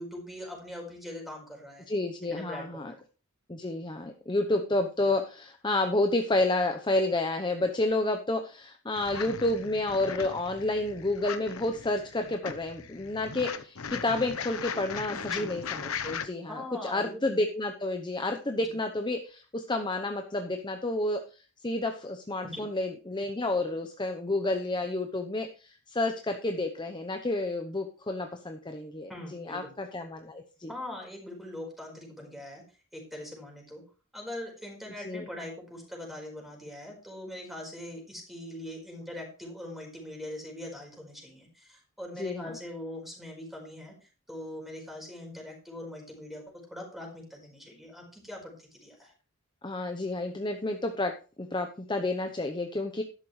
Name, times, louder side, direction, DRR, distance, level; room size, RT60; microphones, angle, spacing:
voice 1, 0.0-1.9 2.3-3.0 15.1-15.5 16.5-17.4 22.5-22.6 29.1-29.7 30.7-32.6 32.9-33.8 34.1-49.1, left 1 dB, ahead, 1 dB, 4.6 m, -42 dB
voice 2, 1.9-2.9 3.5-30.7 35.0-35.3 42.2-42.6 49.6-53.0, left 2 dB, 20° left, 5 dB, 0.9 m, -30 dB
sound 1, 9.0-16.3, left 6 dB, 65° left, 1.0 m, -38 dB
12.5 x 11.5 x 3.3 m, 0.35 s
head